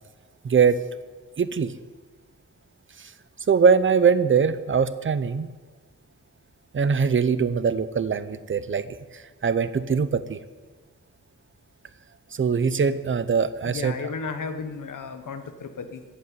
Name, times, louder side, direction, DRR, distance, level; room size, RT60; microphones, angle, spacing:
voice 1, 0.4-0.8 1.4-1.7 3.5-5.5 6.7-8.9 9.4-10.4 12.4-14.0, right 6 dB, 40° right, 14 dB, 0.7 m, -22 dB
voice 2, 13.6-16.0, left 5 dB, 90° left, 9 dB, 1.3 m, -34 dB
14.5 x 8.7 x 9.5 m, 1.4 s
wide cardioid pair, 165°, 30 cm